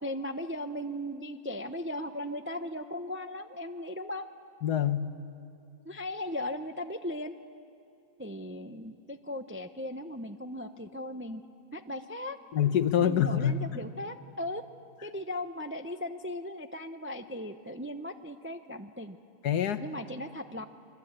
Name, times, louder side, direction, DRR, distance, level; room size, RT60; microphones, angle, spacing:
voice 1, 0.0-4.3 5.8-7.3 8.2-11.4 11.7-12.4 13.0-14.6 15.0-19.2 19.8-20.6, left 1 dB, 20° right, 8 dB, 0.3 m, -37 dB
voice 2, 4.6-5.1 12.5-13.8 19.4-19.8, left 9 dB, 85° left, 11 dB, 1.5 m, -26 dB
26.5 x 23.5 x 8.9 m, 2.5 s
omnidirectional pair, 1.7 m